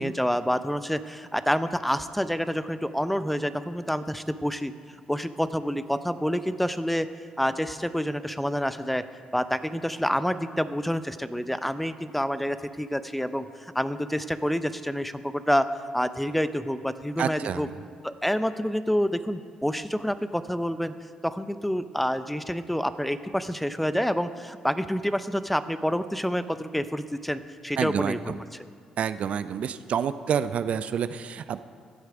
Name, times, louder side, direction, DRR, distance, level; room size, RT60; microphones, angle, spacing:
voice 1, 0.0-4.7 5.1-7.1 7.4-9.0 9.3-15.7 15.9-17.7 18.0-20.9 21.2-28.7, equal, 5° left, 13 dB, 0.6 m, -28 dB
voice 2, 17.2-17.7 27.8-28.4 29.0-31.6, right 8 dB, 60° right, 13 dB, 0.4 m, -28 dB
14.5 x 8.1 x 4.9 m, 2.1 s
supercardioid pair, 55°, 2 cm